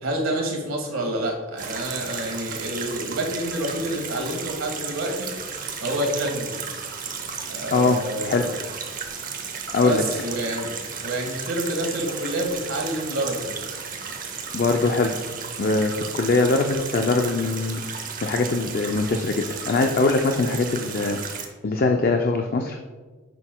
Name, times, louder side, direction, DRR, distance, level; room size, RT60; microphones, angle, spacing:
voice 1, 0.0-5.3 5.8-6.5 7.5-8.4 9.7-13.5, right 1 dB, 80° right, 0 dB, 1.6 m, -28 dB
sound 1, 1.6-21.5, right 6 dB, 40° right, 0.8 m, -34 dB
voice 2, 7.7-8.5 9.7-10.0 14.5-15.2 15.6-22.8, left 3 dB, 45° left, 4 dB, 0.4 m, -22 dB
9.6 x 6.2 x 2.2 m, 1.4 s
head